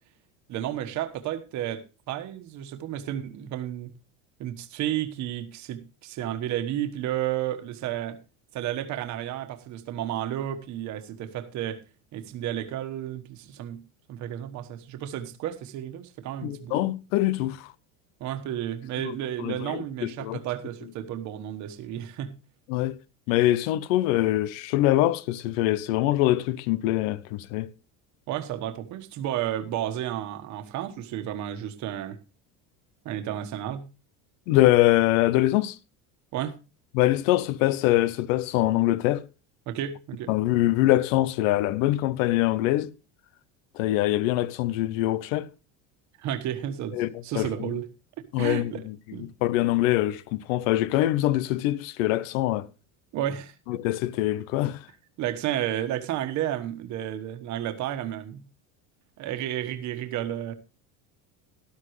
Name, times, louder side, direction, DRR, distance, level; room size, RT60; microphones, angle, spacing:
voice 1, 0.5-3.9 4.4-8.2 8.5-11.8 12.1-13.8 14.1-16.9 18.2-22.3 28.3-32.2 33.0-33.8 36.3-36.6 39.7-40.3 46.2-47.9 48.2-48.8 49.1-49.3 53.1-53.5 55.2-58.4 59.2-60.5, right 11 dB, 45° right, 1.3 m, -32 dB
voice 2, 16.4-17.7 19.0-19.1 19.4-20.4 22.7-23.0 23.3-27.7 34.5-35.8 36.9-39.2 40.3-42.9 43.7-45.5 46.9-47.8 48.3-52.7 53.7-54.8, left 15 dB, 90° left, 0.9 m, -24 dB
13.0 x 12.0 x 3.1 m
cardioid pair, 155°, 39 cm